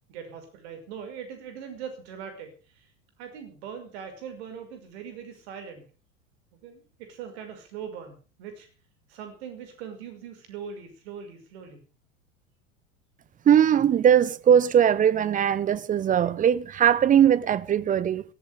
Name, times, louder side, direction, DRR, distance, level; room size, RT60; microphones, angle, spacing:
voice 1, 0.1-2.9 3.2-5.9 6.6-8.7 9.1-11.8, right 7 dB, 55° right, 5.8 m, -41 dB
voice 2, 13.4-18.2, right 9 dB, 20° right, 0.8 m, -20 dB
18.0 x 14.5 x 5.0 m
figure-of-eight pair, 85°, 39 cm